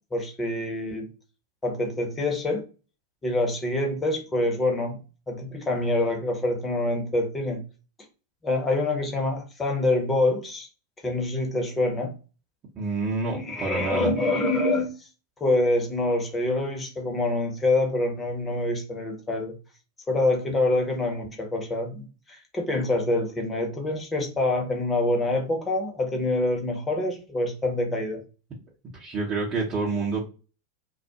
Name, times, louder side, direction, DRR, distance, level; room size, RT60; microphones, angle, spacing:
voice 1, 0.1-1.1 1.6-2.7 3.2-5.0 5.3-7.6 8.4-10.7 11.0-12.1 13.3-15.1 15.4-19.5 20.1-28.2, left 2 dB, 15° left, 2 dB, 0.9 m, -26 dB
voice 2, 12.8-14.1 28.9-30.3, right 3 dB, 30° right, -5 dB, 0.9 m, -28 dB
2.3 x 2.1 x 2.8 m, 0.33 s
figure-of-eight pair, 90°, 0 cm